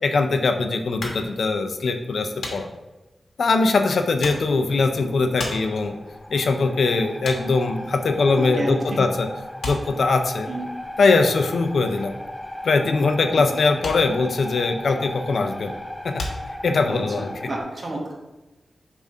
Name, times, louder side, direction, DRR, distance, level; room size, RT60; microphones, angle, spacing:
voice 1, 0.0-2.7 3.4-5.9 6.3-9.3 9.6-10.5 11.0-12.1 12.6-15.7 16.0-16.2 16.6-17.3, left 3 dB, 70° left, 6 dB, 0.5 m, -21 dB
sound 1, 1.0-8.8 9.1-17.2, left 2 dB, 90° left, 1.3 m, -37 dB
sound 2, 4.1-17.6, left 1 dB, 5° left, 0.5 m, -37 dB
voice 2, 8.3-9.0 10.5-10.7 13.3-13.5 16.9-18.1, right 1 dB, 40° right, -2 dB, 1.4 m, -31 dB
7.0 x 2.5 x 5.4 m, 1.1 s
wide cardioid pair, 130°, 0 cm